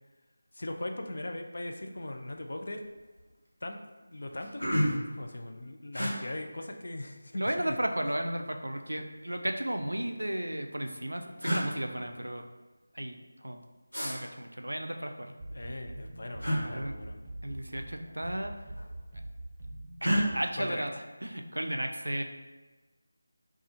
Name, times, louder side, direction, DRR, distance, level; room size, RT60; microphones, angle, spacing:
voice 1, 0.5-2.8 3.6-3.8 4.0-7.8 15.5-17.3 20.6-20.8, left 1 dB, 55° left, 4 dB, 0.4 m, -39 dB
sound 1, 2.2-2.5 2.8-3.3 3.8-3.9 4.2-5.1 5.9-6.1 7.4-8.0 9.2-10.0 10.9-11.0 11.4-11.7 13.9-14.1 16.4-16.6 18.0-18.2 18.5-19.1 20.0-20.2, equal, 90° left, 1.2 m, -31 dB
voice 2, 7.3-12.4 12.9-13.6 14.0-15.3 16.6-17.0 17.4-18.5 20.0-22.2, right 1 dB, 80° right, 5 dB, 0.4 m, -34 dB
sound 2, 15.4-20.4, right 1 dB, 30° right, 0.7 m, -43 dB
4.1 x 2.3 x 2.7 m, 1.2 s
figure-of-eight pair, 165°, 0 cm